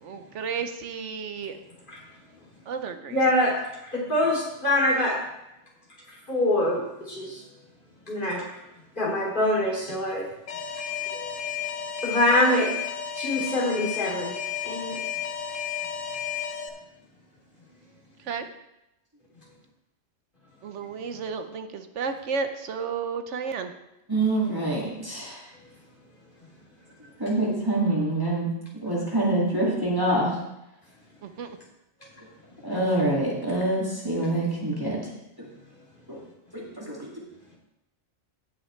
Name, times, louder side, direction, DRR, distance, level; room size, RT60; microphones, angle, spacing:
voice 1, 0.0-1.6 2.7-3.2 18.3-18.5 20.6-23.7 31.2-31.6, right 5 dB, 70° right, 7 dB, 1.1 m, -32 dB
voice 2, 3.1-3.6 3.9-5.2 6.3-7.4 8.1-8.6 9.0-10.3 11.1-11.3 12.0-12.7 13.2-14.3 14.6-15.0 32.0-32.1, left 1 dB, 40° left, -5 dB, 3.1 m, -24 dB
Alarm, 10.5-16.7, left 8 dB, 85° left, 1.2 m, -32 dB
voice 3, 24.1-25.4 27.2-28.5 28.8-30.3 32.6-35.0 36.1-36.2 36.5-37.1, right 2 dB, 15° right, -5 dB, 2.2 m, -25 dB
16.5 x 6.2 x 3.2 m, 0.89 s
omnidirectional pair, 1.3 m